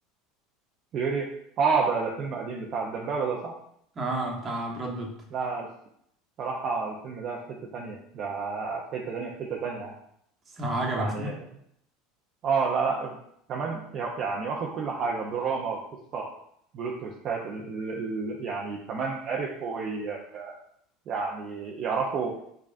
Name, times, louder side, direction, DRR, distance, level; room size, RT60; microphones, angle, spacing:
voice 1, 0.9-3.5 5.3-5.7 6.4-9.9 11.0-11.4 12.4-13.2 13.5-15.8 16.1-16.3 16.7-20.5 21.1-22.5, right 5 dB, 50° right, -1 dB, 0.5 m, -30 dB
voice 2, 4.0-5.2 10.6-11.3, right 1 dB, 30° right, 0 dB, 1.0 m, -30 dB
5.0 x 2.3 x 2.5 m, 0.73 s
hypercardioid pair, 95°, 0 cm